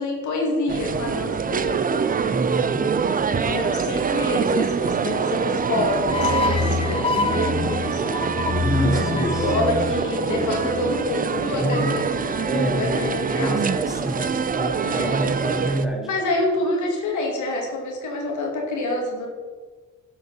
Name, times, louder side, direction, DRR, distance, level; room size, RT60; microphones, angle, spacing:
voice 1, 0.0-1.9 3.4-8.0 8.7-13.7 14.8-15.3 16.1-19.3, left 2 dB, 75° left, 0 dB, 2.4 m, -27 dB
sound 1, 0.7-15.8, right 6 dB, 30° right, 0.5 m, -25 dB
voice 2, 2.3-2.9 8.6-9.5 11.6-11.9 12.5-16.1, right 1 dB, ahead, -3 dB, 3.1 m, -26 dB
sound 2, 6.1-11.3, left 5 dB, 20° left, 0.4 m, -26 dB
11.5 x 7.7 x 4.4 m, 1.4 s
cardioid pair, 90°, 30 cm